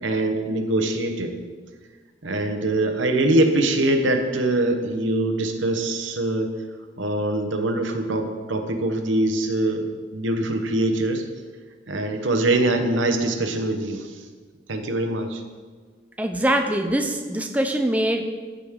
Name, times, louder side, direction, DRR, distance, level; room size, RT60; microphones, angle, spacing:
voice 1, 0.0-1.3 2.2-6.5 7.0-11.2 11.9-14.1 14.7-15.4, right 1 dB, 85° right, 6 dB, 0.9 m, -23 dB
voice 2, 16.2-18.3, right 1 dB, 10° right, 4 dB, 0.4 m, -23 dB
14.0 x 5.1 x 3.7 m, 1.5 s
head